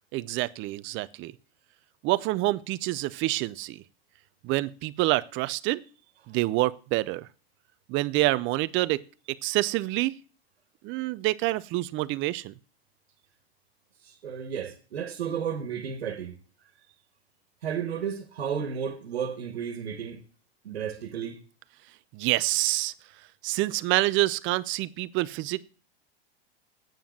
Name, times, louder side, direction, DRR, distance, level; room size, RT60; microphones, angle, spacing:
voice 1, 0.1-1.3 2.0-3.8 4.4-5.8 6.3-7.3 7.9-9.0 9.3-10.2 10.8-12.5 22.1-22.9 23.4-25.6, right 19 dB, 40° right, 0.6 m, -27 dB
voice 2, 14.0-16.4 17.6-20.2 20.6-21.4, right 7 dB, 85° right, 1.6 m, -33 dB
9.1 x 7.0 x 7.4 m
hypercardioid pair, 105°, 31 cm